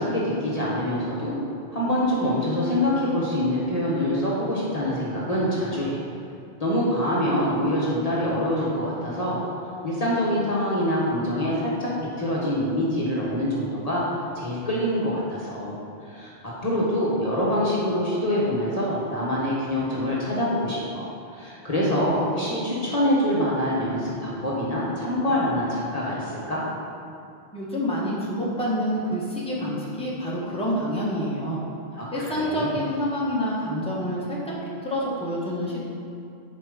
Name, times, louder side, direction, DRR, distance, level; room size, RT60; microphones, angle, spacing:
voice 1, 0.0-1.4 1.7-6.0 6.6-9.4 9.8-11.9 12.2-14.0 14.3-15.8 16.0-21.0 21.3-26.6 32.0-32.7, left 1 dB, 35° left, -7 dB, 1.4 m, -25 dB
voice 2, 27.5-31.6 32.1-34.4 34.8-35.9, equal, 5° left, -6 dB, 1.5 m, -27 dB
10.0 x 4.8 x 5.2 m, 2.6 s
omnidirectional pair, 1.1 m